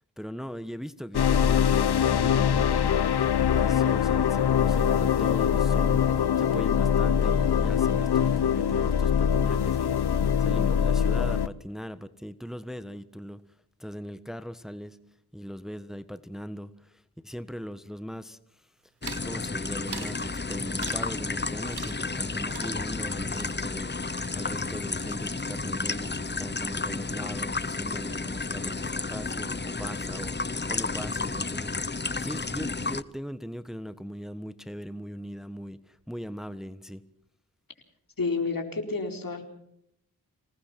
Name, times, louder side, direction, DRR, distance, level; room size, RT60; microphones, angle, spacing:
voice 1, 0.0-13.4 13.8-15.0 15.3-18.7 19.2-37.0, equal, ahead, 13 dB, 1.3 m, -39 dB
sound 1, 1.1-11.5, left 8 dB, 85° left, 0.9 m, -23 dB
sound 2, 19.0-33.0, left 3 dB, 25° left, 1.0 m, -32 dB
sound 3, 19.0-19.3 19.9-20.2 20.8-21.2 21.7-22.2 22.5-24.8 25.1-25.7 25.9-26.5, right 6 dB, 80° right, 1.8 m, -44 dB
voice 2, 38.2-39.4, left 4 dB, 60° left, 4 dB, 4.1 m, -29 dB
26.5 x 18.5 x 5.9 m, 0.75 s
cardioid pair, 45°, 38 cm